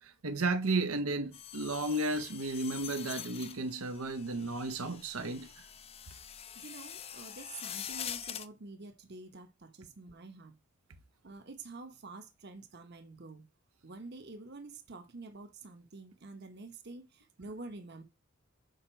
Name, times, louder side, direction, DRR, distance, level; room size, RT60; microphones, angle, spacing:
voice 1, 0.0-5.5, right 2 dB, 85° right, 0.9 m, -33 dB
sound 1, 1.3-8.5, left 9 dB, 25° left, 0.4 m, -44 dB
voice 2, 6.5-10.5 11.2-13.5 13.8-18.0, right 3 dB, 50° right, 1.1 m, -48 dB
6.5 x 5.1 x 4.5 m
head